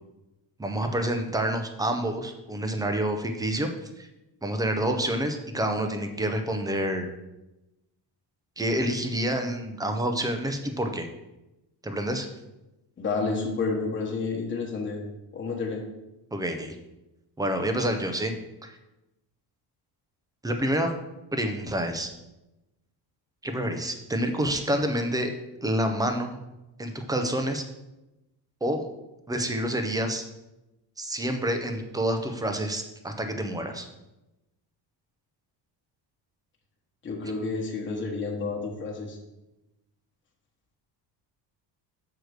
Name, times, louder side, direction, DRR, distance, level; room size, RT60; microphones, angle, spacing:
voice 1, 0.6-3.7 4.0-4.1 4.4-7.1 8.6-11.1 11.8-12.3 16.3-16.8 17.4-18.3 18.6-18.8 20.4-20.9 21.3-22.1 23.4-25.3 25.6-26.3 26.8-27.6 28.6-28.9 29.3-30.2 31.0-33.9, right 1 dB, 10° right, 5 dB, 0.4 m, -28 dB
voice 2, 13.0-15.0 15.3-15.8 37.0-39.2, left 4 dB, 25° left, -2 dB, 1.2 m, -30 dB
6.5 x 4.7 x 6.3 m, 0.97 s
cardioid pair, 175°, 46 cm